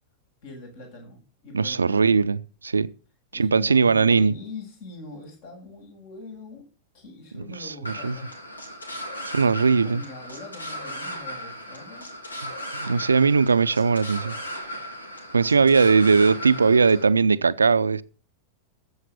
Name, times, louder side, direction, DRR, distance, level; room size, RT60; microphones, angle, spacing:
voice 1, 0.4-2.2 3.3-6.6 6.9-8.3 9.5-12.1, left 3 dB, 55° left, 7.5 m, -43 dB
voice 2, 1.5-2.9 3.3-4.4 7.6-8.2 9.3-10.0 12.4-14.4 15.3-18.0, right 5 dB, 75° right, 0.6 m, -20 dB
sound 1, 7.9-17.1, equal, 80° left, 2.8 m, -36 dB
13.5 x 7.9 x 6.8 m
figure-of-eight pair, 90°, 0 cm